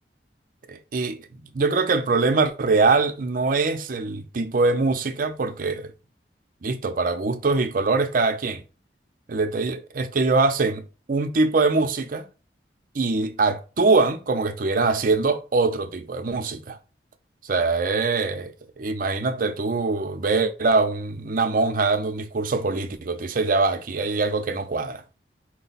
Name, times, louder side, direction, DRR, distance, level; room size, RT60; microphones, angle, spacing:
voice 1, 0.7-1.3 1.5-5.9 6.6-8.6 9.3-10.8 11.1-12.3 12.9-16.8 17.4-25.0, right 3 dB, 50° right, 0.5 m, -23 dB
4.5 x 2.2 x 4.0 m
head